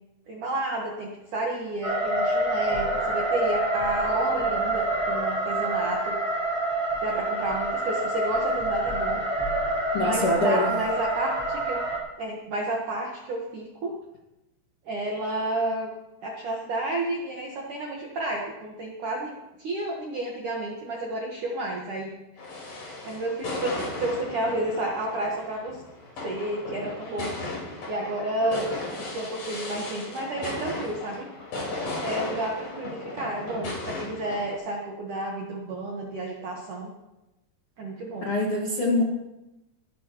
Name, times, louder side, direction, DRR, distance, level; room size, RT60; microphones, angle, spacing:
voice 1, 0.3-6.2 7.0-9.2 10.0-11.8 12.2-13.9 14.9-15.9 16.2-22.1 23.0-25.8 26.2-27.4 27.9-28.6 29.0-31.3 32.0-36.9 37.8-38.3, right 1 dB, 75° right, -2 dB, 1.9 m, -31 dB
sound 1, 1.8-12.0, right 2 dB, 10° left, 2.2 m, -27 dB
voice 2, 9.9-10.7 38.2-39.0, left 1 dB, 75° left, -2 dB, 1.3 m, -24 dB
sound 2, 22.4-34.6, left 2 dB, 45° left, 5.8 m, -36 dB
22.0 x 12.0 x 3.1 m, 0.97 s
omnidirectional pair, 6.0 m